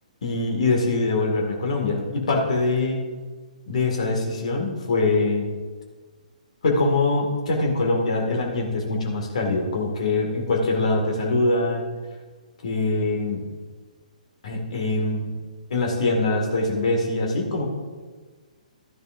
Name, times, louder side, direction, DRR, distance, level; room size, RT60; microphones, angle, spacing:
voice 1, 0.2-3.0 3.7-5.5 6.6-11.9 12.6-13.4 14.4-15.3 15.7-17.7, left 2 dB, 55° left, 1 dB, 2.0 m, -23 dB
13.0 x 10.5 x 2.6 m, 1.4 s
figure-of-eight pair, 125°, 4 cm